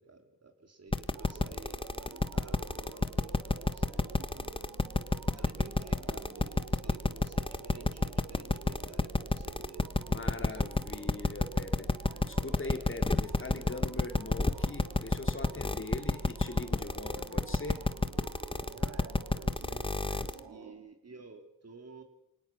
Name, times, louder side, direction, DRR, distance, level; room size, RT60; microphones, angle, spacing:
voice 1, 0.0-4.5 5.3-10.0 10.4-11.2 18.5-22.0, right 4 dB, 35° right, 6 dB, 3.7 m, -52 dB
sound 1, 0.9-20.4, left 2 dB, 15° left, 1.3 m, -29 dB
sound 2, 1.1-20.7, right 6 dB, 75° right, 2.9 m, -49 dB
voice 2, 10.0-17.8, left 3 dB, 30° left, 5 dB, 3.3 m, -42 dB
24.0 x 19.0 x 6.2 m, 0.81 s
supercardioid pair, 55°, 41 cm